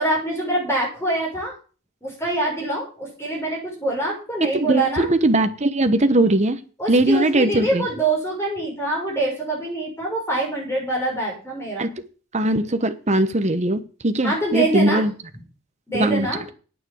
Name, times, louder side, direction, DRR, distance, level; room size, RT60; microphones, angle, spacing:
voice 1, 0.0-1.5 2.0-5.1 6.8-11.9 14.2-15.0 15.9-16.4, right 2 dB, 10° left, -3 dB, 6.4 m, -25 dB
voice 2, 4.5-6.6 6.9-7.9 11.8-11.9 12.3-15.1 15.9-16.3, right 1 dB, 35° right, 9 dB, 1.1 m, -20 dB
9.4 x 7.9 x 7.9 m, 0.37 s
head